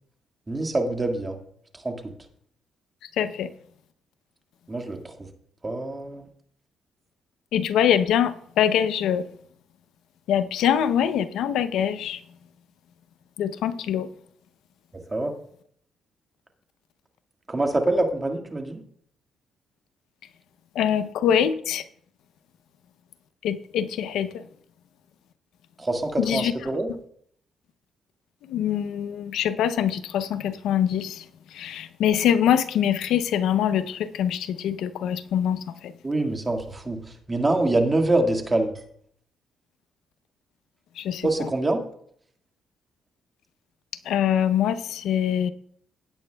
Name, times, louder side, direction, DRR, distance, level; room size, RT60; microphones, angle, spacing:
voice 1, 0.5-1.4 1.8-2.0 4.7-5.1 5.6-6.2 15.1-15.3 17.5-18.8 25.8-26.9 36.0-37.0 37.3-38.7 41.2-41.8, right 2 dB, 25° right, 1.7 m, -25 dB
voice 2, 3.2-3.5 7.5-9.2 10.3-12.2 13.4-14.1 20.8-21.8 23.4-24.4 26.2-26.5 28.5-31.2 31.5-35.9 41.0-41.3 44.1-45.5, left 9 dB, 80° left, 0.5 m, -24 dB
16.5 x 8.9 x 2.2 m
cardioid pair, 90°, 0 cm